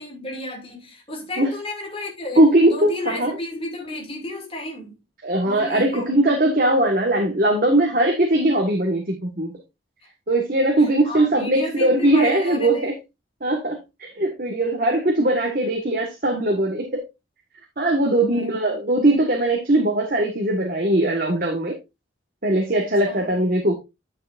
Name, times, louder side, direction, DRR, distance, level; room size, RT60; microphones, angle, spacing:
voice 1, 0.0-5.0 5.5-6.1 10.0-10.1 10.8-12.9 18.2-18.8 22.7-23.4, left 1 dB, 30° left, 2.5 m, -33 dB
voice 2, 2.4-3.3 5.2-9.5 10.3-12.9 13.4-17.0 17.8-21.7 22.4-23.7, right 1 dB, 50° right, 1.5 m, -20 dB
9.4 x 6.8 x 2.6 m
head